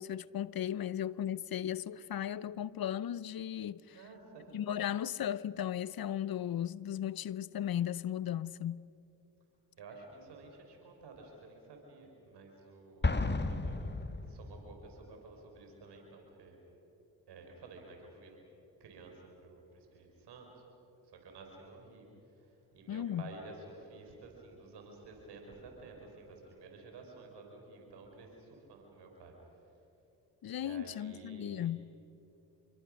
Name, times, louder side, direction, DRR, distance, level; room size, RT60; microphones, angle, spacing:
voice 1, 0.0-4.0 4.5-8.9 22.9-23.2 30.4-31.9, left 10 dB, 60° left, 0.7 m, -36 dB
voice 2, 3.9-4.6 9.8-13.8 14.3-16.6 17.3-18.4 18.8-20.5 21.0-22.1 22.4-29.3 30.5-31.7, right 3 dB, 90° right, 4.7 m, -52 dB
Explosion, 13.0-14.8, left 3 dB, 25° left, 1.7 m, -33 dB
27.5 x 23.5 x 6.4 m
supercardioid pair, 40°, 39 cm